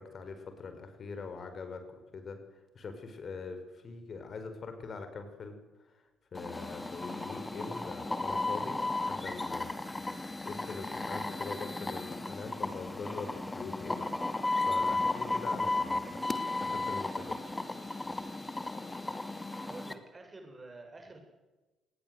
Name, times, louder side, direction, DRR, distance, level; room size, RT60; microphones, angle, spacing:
voice 1, 0.0-1.8 2.1-2.4 2.8-5.6 6.3-8.8 9.1-9.8 10.5-14.0 14.7-16.2 16.6-17.4, left 4 dB, 40° left, 8 dB, 5.2 m, -43 dB
sound 1, 6.3-19.9, left 2 dB, 15° left, 2.4 m, -34 dB
voice 2, 19.6-21.2, right 2 dB, 25° right, 4 dB, 7.1 m, -48 dB
26.5 x 20.0 x 8.0 m, 1.1 s
figure-of-eight pair, 45°, 0 cm